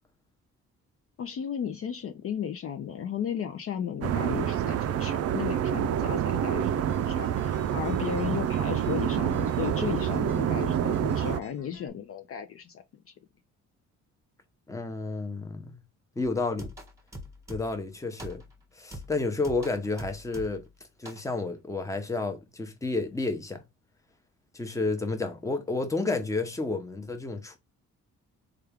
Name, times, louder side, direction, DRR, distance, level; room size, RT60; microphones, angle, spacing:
voice 1, 1.2-12.8, left 8 dB, 50° left, 0.5 m, -35 dB
sound 1, 4.0-11.4, right 9 dB, 55° right, 0.4 m, -27 dB
sound 2, 6.9-11.9, left 4 dB, 85° left, 1.0 m, -54 dB
voice 2, 14.7-15.8 16.2-16.7 17.5-18.4 18.8-20.6 21.0-23.6 24.5-27.6, left 3 dB, 10° left, 0.8 m, -31 dB
sound 3, 16.6-17.9 18.2-18.6 18.9-20.7 21.0-21.3, equal, 10° right, 1.3 m, -43 dB
3.3 x 2.4 x 3.4 m
cardioid pair, 90°, 30 cm